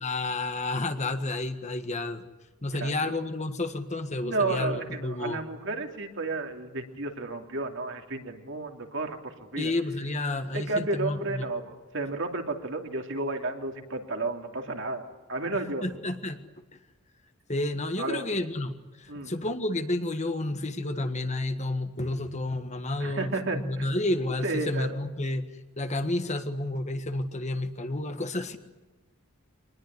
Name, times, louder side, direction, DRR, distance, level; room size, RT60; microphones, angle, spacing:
voice 1, 0.0-2.2 2.6-5.4 9.6-11.4 15.8-16.4 17.5-25.5 25.8-28.6, left 2 dB, 30° left, 8 dB, 1.6 m, -30 dB
voice 2, 4.2-9.7 10.5-15.8 18.0-18.2 19.1-19.3 23.0-23.9 24.4-25.0, right 3 dB, 60° right, 4 dB, 2.9 m, -32 dB
25.0 x 20.0 x 10.0 m, 1.1 s
head